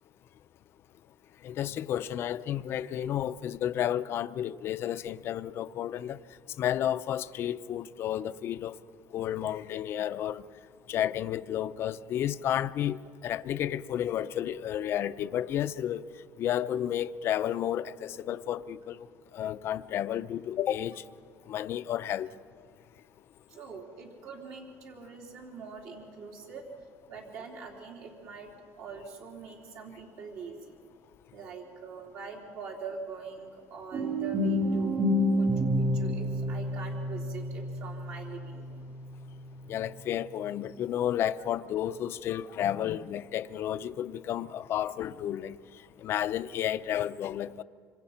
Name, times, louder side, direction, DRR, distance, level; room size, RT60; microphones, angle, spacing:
voice 1, 1.4-6.2 6.6-8.7 9.1-10.4 10.9-13.0 13.2-16.0 16.4-19.1 19.3-21.0 21.5-22.3 39.7-45.6 46.0-47.6, left 11 dB, 45° left, 0.6 m, -31 dB
voice 2, 23.5-26.6 27.1-30.8 31.3-35.0 35.3-35.7 35.9-38.9, right 5 dB, 60° right, 3.4 m, -43 dB
sound 1, 33.9-39.8, equal, 40° right, 3.2 m, -29 dB
26.0 x 25.5 x 5.8 m
cardioid pair, 165°, 6 cm